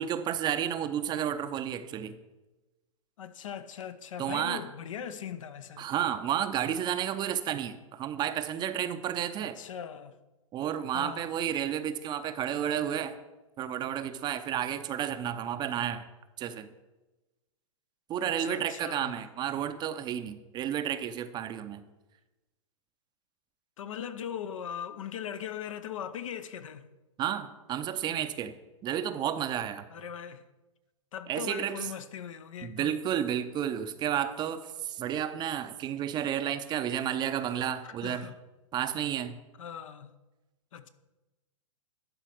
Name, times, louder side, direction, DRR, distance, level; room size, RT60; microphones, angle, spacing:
voice 1, 0.0-2.2 4.2-4.6 5.8-9.6 10.5-13.2 13.6-16.0 16.4-16.7 18.1-21.8 27.2-28.5 28.8-29.8 31.3-31.9 32.6-38.3 38.7-39.4, right 10 dB, 25° right, 0.6 m, -31 dB
voice 2, 3.2-5.9 9.4-10.2 10.9-11.3 18.2-19.2 23.8-26.9 29.9-30.4 31.1-32.9 37.8-38.4 39.6-40.2 40.7-40.9, left 8 dB, 70° left, 0.8 m, -40 dB
11.5 x 4.2 x 6.4 m
hypercardioid pair, 115°, 17 cm